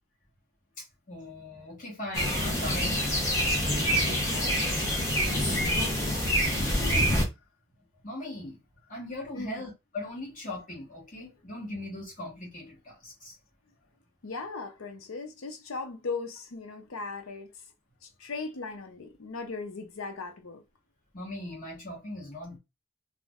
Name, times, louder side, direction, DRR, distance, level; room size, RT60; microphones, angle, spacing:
voice 1, 0.8-3.1 8.0-8.6 8.9-13.4 21.1-22.6, left 1 dB, 35° left, 1.1 m, -39 dB
sound 1, 2.1-7.3, equal, 15° left, 0.7 m, -26 dB
voice 2, 4.0-4.6 5.7-6.4 9.3-9.6 14.2-17.6 18.0-20.6, left 4 dB, 70° left, 0.6 m, -38 dB
2.5 x 2.0 x 3.4 m
head